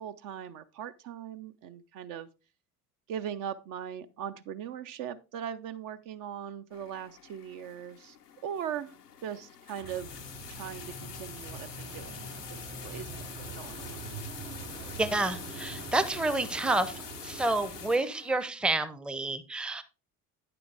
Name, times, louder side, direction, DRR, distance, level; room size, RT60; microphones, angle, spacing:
voice 1, 0.0-2.3 3.1-8.2 8.4-8.9 9.2-10.1 10.5-14.1, right 9 dB, 45° right, 10 dB, 0.6 m, -40 dB
sound 1, 6.7-18.5, left 8 dB, 90° left, 0.8 m, -46 dB
sound 2, 9.8-17.9, right 3 dB, 65° right, 3.9 m, -44 dB
voice 2, 15.0-16.9 17.2-19.8, right 2 dB, ahead, 13 dB, 0.6 m, -29 dB
9.3 x 6.9 x 3.4 m, 0.30 s
figure-of-eight pair, 65°, 45 cm